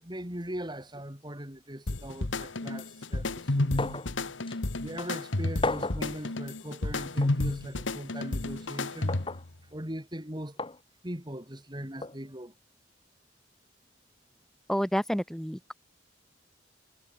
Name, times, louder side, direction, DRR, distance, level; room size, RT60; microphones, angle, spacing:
voice 1, 0.0-4.0 4.8-9.1 9.7-10.6 11.0-12.5, equal, 25° right, 5.2 m, -40 dB
sound 1, 1.9-9.5, left 2 dB, 85° left, 1.6 m, -31 dB
sound 2, 3.8-4.1 4.5-4.6 5.6-6.1 7.2-7.4 9.1-9.4 10.6-10.8 12.0-12.2, left 3 dB, 25° left, 1.2 m, -33 dB
voice 2, 14.7-15.7, equal, ahead, 1.6 m, -29 dB
head